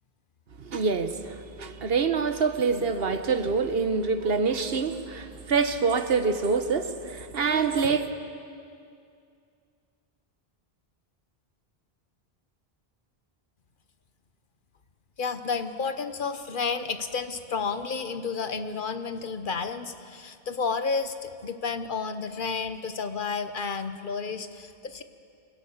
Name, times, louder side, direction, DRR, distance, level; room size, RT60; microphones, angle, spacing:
voice 1, 0.6-8.1, right 5 dB, 70° right, 9 dB, 1.3 m, -26 dB
voice 2, 15.2-25.0, left 5 dB, 55° left, 10 dB, 1.1 m, -31 dB
24.5 x 17.5 x 7.2 m, 2.4 s
omnidirectional pair, 1.0 m